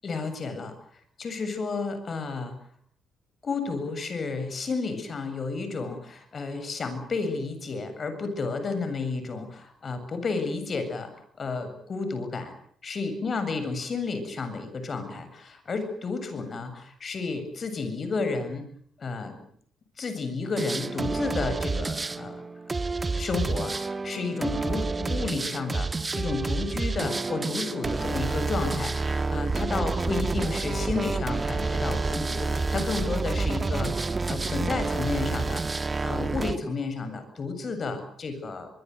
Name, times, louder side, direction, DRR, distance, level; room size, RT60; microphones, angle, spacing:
voice 1, 0.0-0.8 1.2-2.5 3.4-11.1 11.4-12.5 12.8-18.7 19.0-19.4 20.0-22.4 23.1-35.6 36.0-38.7, left 4 dB, 45° left, 9 dB, 7.6 m, -32 dB
sound 1, 20.6-36.6, right 3 dB, 30° right, 1.6 m, -29 dB
23.5 x 23.5 x 8.2 m, 0.62 s
hypercardioid pair, 50°, 0 cm